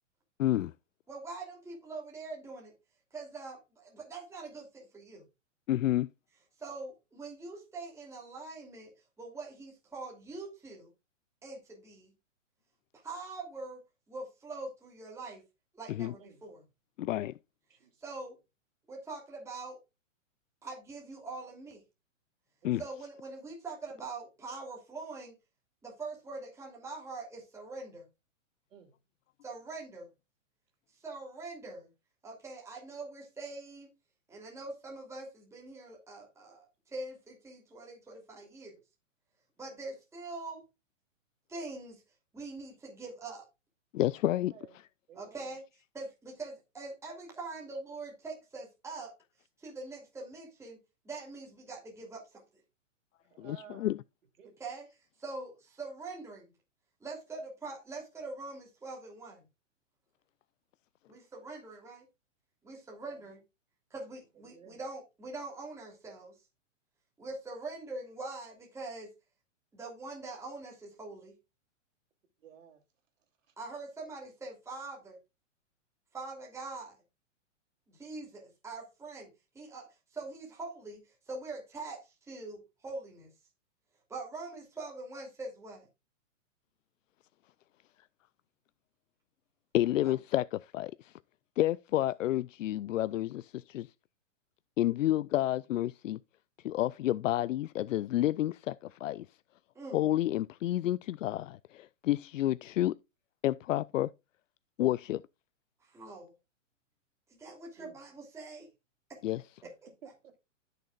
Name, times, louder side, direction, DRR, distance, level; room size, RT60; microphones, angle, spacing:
voice 1, 0.4-0.7 5.7-6.1 15.9-16.1 17.0-17.4 22.6-22.8 43.9-44.5 53.4-54.0 89.7-91.1 91.6-93.9 94.8-96.2 96.6-99.3 99.9-103.0 103.4-104.1 104.8-105.2 109.2-109.4, left 14 dB, 80° left, 0.5 m, -30 dB
voice 2, 1.1-2.7 3.1-5.2 6.6-8.9 9.2-10.9 11.4-12.1 13.0-13.8 14.1-15.4 15.7-16.6 18.0-18.3 18.9-19.8 20.6-21.8 22.8-25.4 25.8-28.0 29.4-30.1 30.9-31.9 32.2-33.9 34.3-38.7 39.6-40.6 41.5-42.0 42.3-43.4 45.1-45.6 45.9-49.1 49.6-50.8 51.0-52.4 54.6-54.8 55.2-56.5 57.0-59.4 61.1-62.1 62.6-63.4 63.9-66.3 67.2-69.1 69.7-71.3 73.6-75.2 76.1-76.9 77.9-79.3 79.5-83.3 84.1-85.9 90.0-90.2 99.7-100.0 105.8-106.3 107.4-108.7 109.1-109.2 109.6-109.7, right 3 dB, 5° right, 3.0 m, -43 dB
voice 3, 17.7-18.0 22.6-22.8 28.7-28.9 44.3-44.8 45.1-45.5 53.2-53.9 54.4-54.5 63.0-63.2 64.3-64.8 72.4-72.8 73.5-73.6 107.8-108.0 110.0-110.3, right 8 dB, 80° right, 3.2 m, -54 dB
15.0 x 6.7 x 2.4 m
hypercardioid pair, 145°, 38 cm